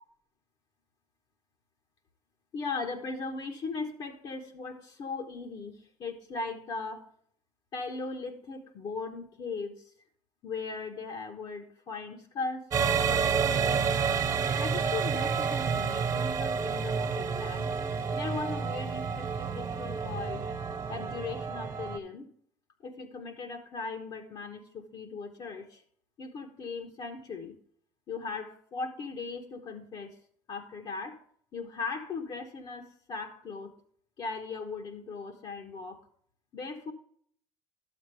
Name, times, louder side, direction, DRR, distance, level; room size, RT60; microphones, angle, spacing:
voice 1, 2.5-7.1 7.7-9.9 10.4-14.0 14.6-17.7 18.1-20.4 20.9-22.3 22.8-25.8 26.2-27.6 28.1-30.2 30.5-31.2 31.5-33.8 34.2-36.1 36.5-36.9, left 4 dB, 50° left, 4 dB, 1.3 m, -38 dB
sound 1, 12.7-22.0, right 6 dB, 35° right, 1.4 m, -29 dB
12.0 x 7.3 x 3.4 m, 0.62 s
supercardioid pair, 85°, 10 cm